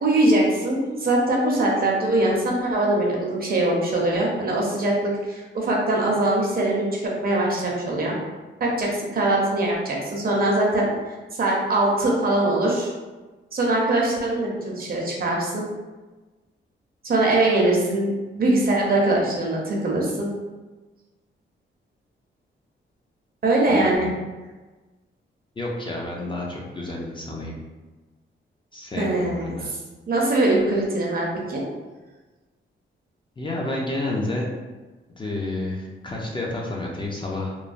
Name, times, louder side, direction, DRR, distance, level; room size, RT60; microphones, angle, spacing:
voice 1, 0.0-8.1 8.6-10.9 11.4-12.9 13.5-15.6 17.0-20.3 23.4-24.1 29.0-29.8 30.1-31.6, right 2 dB, 45° right, -2 dB, 0.7 m, -22 dB
voice 2, 23.7-24.1 25.6-27.6 28.7-29.7 33.4-34.5 35.2-37.5, left 2 dB, 25° left, -3 dB, 0.5 m, -30 dB
3.1 x 2.1 x 2.5 m, 1.2 s
cardioid pair, 110°, 21 cm